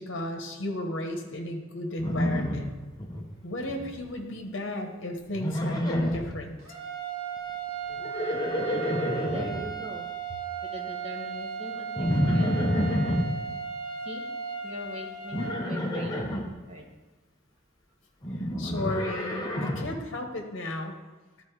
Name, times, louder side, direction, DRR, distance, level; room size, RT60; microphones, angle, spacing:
voice 1, 0.0-2.7 3.4-6.6 18.6-21.0, left 1 dB, 65° left, 3 dB, 1.1 m, -34 dB
Livestock farm animals working animals, 2.0-3.2 3.5-4.0 5.3-6.3 7.9-9.7 12.0-13.3 15.3-16.4 18.2-20.0, equal, 20° left, 0.9 m, -28 dB
sound 1, 6.6-15.5, right 6 dB, 85° right, 1.9 m, -36 dB
voice 2, 9.3-10.1 10.7-12.6 14.0-14.2 14.6-16.3 16.7-16.8, equal, 30° right, 0 dB, 1.3 m, -41 dB
11.5 x 4.2 x 4.7 m, 1.2 s
head